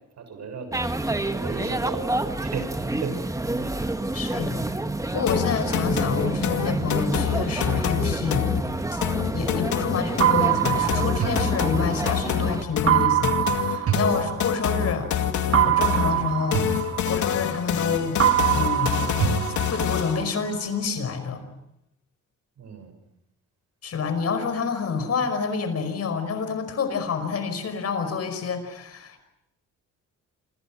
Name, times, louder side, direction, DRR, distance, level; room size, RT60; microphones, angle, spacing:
voice 1, 0.2-0.9 1.2-3.2 3.6-4.0 22.6-22.9, right 5 dB, 65° right, 8 dB, 7.0 m, -36 dB
sound 1, 0.7-12.6, right 2 dB, 10° right, 1.4 m, -29 dB
voice 2, 4.1-4.6 5.1-8.6 8.9-9.0 9.3-15.1 15.6-16.7 17.1-18.2 18.5-19.2 19.7-21.4 23.8-29.2, left 5 dB, 55° left, 9 dB, 5.3 m, -28 dB
sound 2, 5.3-20.3, left 9 dB, 75° left, 2.4 m, -27 dB
sound 3, 10.2-12.3 12.9-14.9 15.5-17.8 18.2-20.3, right 11 dB, 50° right, 1.6 m, -24 dB
28.5 x 26.5 x 6.3 m, 0.85 s
cardioid pair, 90°, 30 cm